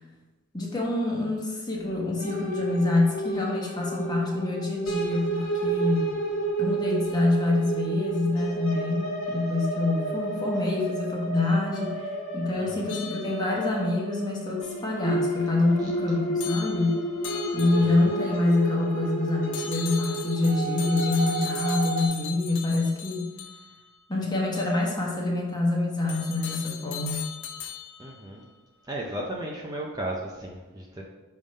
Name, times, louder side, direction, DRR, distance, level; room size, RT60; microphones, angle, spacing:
voice 1, 0.5-6.1 6.6-16.9 17.5-23.3 24.1-27.3, left 2 dB, 20° left, -2 dB, 1.1 m, -26 dB
sound 1, 2.2-22.1, right 2 dB, 90° left, 1.9 m, -31 dB
sound 2, 12.9-13.8 16.4-18.2 19.5-23.9 24.5-24.8 26.1-28.2, left 8 dB, 60° left, 0.5 m, -38 dB
voice 2, 17.8-18.1 28.0-28.5 28.8-31.0, right 1 dB, 20° right, -2 dB, 0.5 m, -35 dB
5.3 x 3.5 x 5.3 m, 1.2 s
head